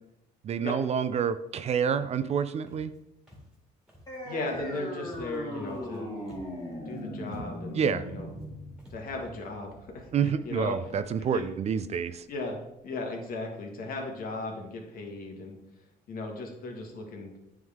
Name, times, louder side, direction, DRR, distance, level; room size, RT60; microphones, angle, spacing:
voice 1, 0.4-2.9 7.8-8.0 10.1-12.2, right 7 dB, 40° right, 13 dB, 0.4 m, -28 dB
Walk footsteps, 2.7-3.0 3.3-3.6 3.9-4.2 4.5-4.8 5.1-6.0 6.2-6.6 6.9-7.0 7.2-7.8 8.3-8.5 8.8-9.0, equal, 5° right, 2.0 m, -50 dB
sound 1, 4.1-11.1, left 1 dB, 20° left, 2.2 m, -39 dB
voice 2, 4.2-6.1 6.8-8.3 8.9-11.4 12.3-12.6 12.8-15.6 16.1-17.3, left 2 dB, 60° left, 2 dB, 1.6 m, -37 dB
9.2 x 3.6 x 3.6 m, 0.88 s
cardioid pair, 110°, 17 cm